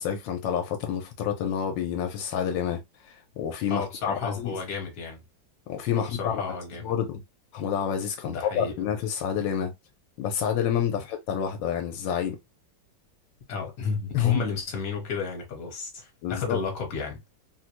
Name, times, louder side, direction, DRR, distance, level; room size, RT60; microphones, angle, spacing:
voice 1, 0.0-2.8 3.1-4.6 5.7-6.6 6.8-7.2 7.5-9.7 10.2-12.4 14.1-14.4 16.2-16.6, left 9 dB, 90° left, 1.4 m, -28 dB
voice 2, 3.7-5.2 6.0-6.9 8.2-8.7 10.9-11.0 13.5-17.2, left 5 dB, 55° left, 1.6 m, -32 dB
3.8 x 2.1 x 2.9 m
omnidirectional pair, 2.0 m